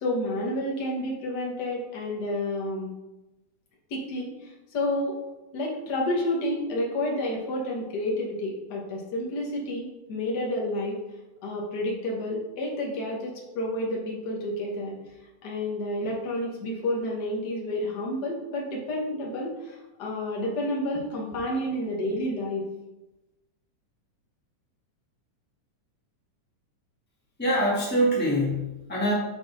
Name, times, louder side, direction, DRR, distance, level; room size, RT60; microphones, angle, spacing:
voice 1, 0.0-2.9 3.9-5.1 5.5-10.9 11.4-14.9 15.4-22.6, left 1 dB, 70° left, -2 dB, 0.9 m, -30 dB
voice 2, 27.4-29.1, equal, 15° left, -6 dB, 0.4 m, -24 dB
6.5 x 4.1 x 4.0 m, 1.0 s
omnidirectional pair, 3.6 m